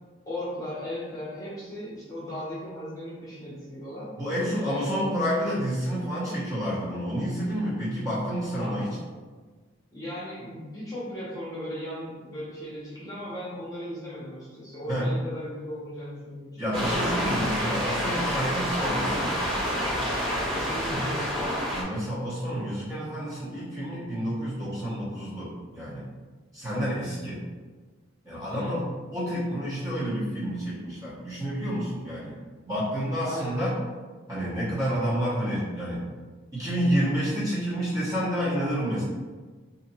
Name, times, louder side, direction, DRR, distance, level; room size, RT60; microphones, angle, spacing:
voice 1, 0.3-4.1 4.6-5.1 8.6-8.8 9.9-16.6 20.5-21.5 28.4-28.9 33.2-33.7, left 1 dB, 15° left, -8 dB, 0.9 m, -37 dB
voice 2, 4.1-8.9 14.9-15.1 16.6-19.3 21.7-26.1 26.5-27.4 28.2-28.8 29.1-32.3 32.6-33.7 34.3-36.0 36.5-39.0, equal, 15° right, -9 dB, 0.9 m, -29 dB
sound 1, 16.7-21.8, equal, 65° right, 1.1 m, -28 dB
2.7 x 2.5 x 4.1 m, 1.4 s
head